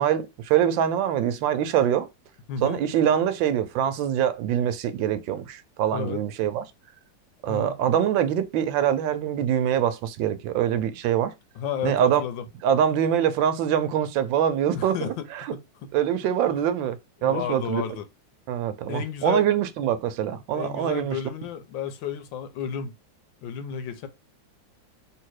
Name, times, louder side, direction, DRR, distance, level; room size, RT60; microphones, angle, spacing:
voice 1, 0.0-2.1 2.6-6.6 7.4-11.3 11.8-12.2 12.6-15.6 15.9-17.8 18.5-21.1, right 9 dB, 85° right, 1.3 m, -24 dB
voice 2, 2.5-2.8 5.9-6.2 7.5-7.8 11.5-12.5 14.7-15.9 17.2-18.1 18.9-19.5 20.5-22.9 23.4-24.1, left 7 dB, 85° left, 1.4 m, -32 dB
3.3 x 2.9 x 4.6 m
omnidirectional pair, 2.0 m